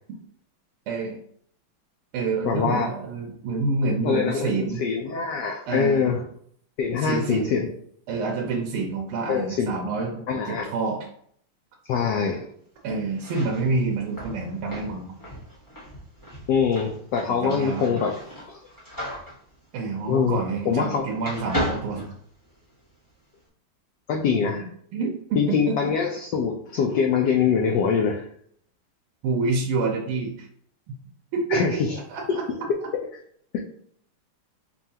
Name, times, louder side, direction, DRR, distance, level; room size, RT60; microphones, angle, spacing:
voice 1, 0.9-1.2 2.1-4.8 5.6-6.2 7.0-7.5 8.1-11.1 12.8-15.2 17.4-17.8 19.7-22.1 24.5-24.6 24.9-25.9 29.2-30.5 30.9-31.0 31.3-32.4, right 3 dB, 85° right, 0 dB, 1.6 m, -28 dB
voice 2, 2.4-2.9 4.0-6.2 6.8-7.7 9.3-9.7 10.3-10.7 11.9-12.5 16.5-18.1 18.5-18.6 20.1-20.4 20.7-21.0 24.1-24.7 25.4-28.2 31.5-31.9 32.3-32.4 33.5-33.6, left 6 dB, 75° left, 1 dB, 1.0 m, -24 dB
sound 1, 13.1-20.9 21.2-22.8, equal, 15° left, 0.6 m, -35 dB
5.6 x 2.3 x 2.7 m, 0.62 s
omnidirectional pair, 2.3 m